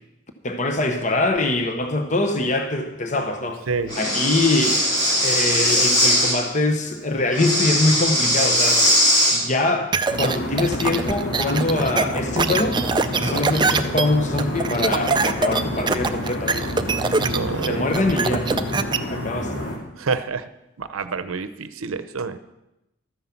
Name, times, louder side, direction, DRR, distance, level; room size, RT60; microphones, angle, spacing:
voice 1, 0.4-3.6 4.0-4.8 5.2-8.8 9.3-12.8 13.2-16.7 17.7-18.5 19.1-19.6, left 2 dB, 35° left, 5 dB, 0.9 m, -23 dB
Breathing, 3.9-6.4 7.3-9.4, equal, 20° left, 2.5 m, -19 dB
sound 1, 9.9-19.0, right 4 dB, 20° right, 0.4 m, -23 dB
sound 2, 10.1-19.8, left 1 dB, 60° left, 2.3 m, -29 dB
voice 2, 17.2-17.8 20.0-20.4 20.8-22.4, right 4 dB, 90° right, 13 dB, 0.7 m, -28 dB
13.0 x 9.4 x 5.9 m, 0.93 s
head